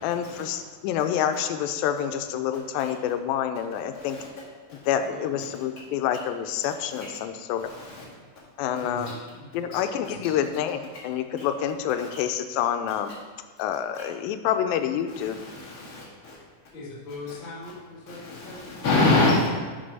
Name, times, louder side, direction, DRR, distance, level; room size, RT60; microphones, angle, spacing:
voice 1, 0.0-4.2 4.9-7.7 8.6-9.1 9.5-13.1 13.6-15.4, left 9 dB, 90° left, 8 dB, 2.3 m, -27 dB
voice 2, 5.1-5.6 8.7-9.0 9.6-10.1 16.7-18.8, left 3 dB, 60° left, -4 dB, 1.3 m, -41 dB
voice 3, 15.5-16.0 18.1-19.4, left 2 dB, 30° left, -7 dB, 2.0 m, -23 dB
6.7 x 5.5 x 5.4 m, 1.4 s
omnidirectional pair, 4.0 m